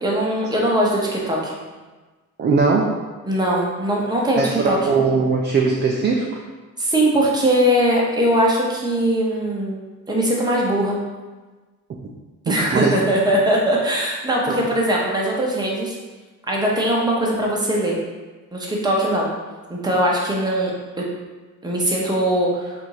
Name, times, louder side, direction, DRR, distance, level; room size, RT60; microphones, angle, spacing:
voice 1, 0.0-1.5 3.2-4.8 6.8-9.8 10.1-11.0 12.5-15.9 16.5-18.0 18.5-19.3 19.7-21.1 21.6-22.7, right 1 dB, 15° right, -3 dB, 0.9 m, -20 dB
voice 2, 2.4-3.0 4.4-6.4 12.5-12.9 14.5-14.6, right 4 dB, 35° right, -1 dB, 0.4 m, -20 dB
4.2 x 2.6 x 4.7 m, 1.3 s
cardioid pair, 140°, 31 cm